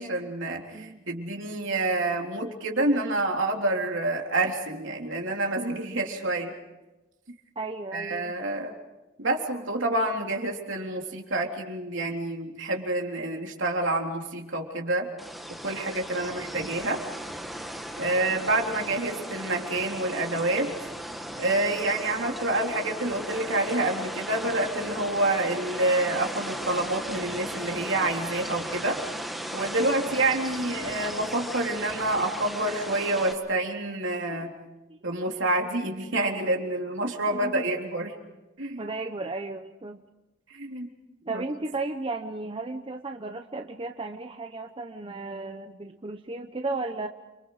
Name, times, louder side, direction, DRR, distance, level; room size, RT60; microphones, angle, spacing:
voice 1, 0.0-6.5 7.9-8.7 9.2-15.1 15.6-17.0 18.0-20.7 21.4-29.0 29.5-34.5 35.0-38.1 38.6-38.8 40.5-40.9 41.3-41.4, right 2 dB, 65° right, 1 dB, 3.7 m, -28 dB
voice 2, 7.6-8.3 34.3-34.4 34.9-35.0 37.3-37.6 38.8-40.0 41.2-47.1, right 3 dB, 25° right, 6 dB, 0.9 m, -34 dB
sound 1, 15.2-33.3, equal, ahead, 1.9 m, -36 dB
29.5 x 25.0 x 5.0 m, 1.0 s
head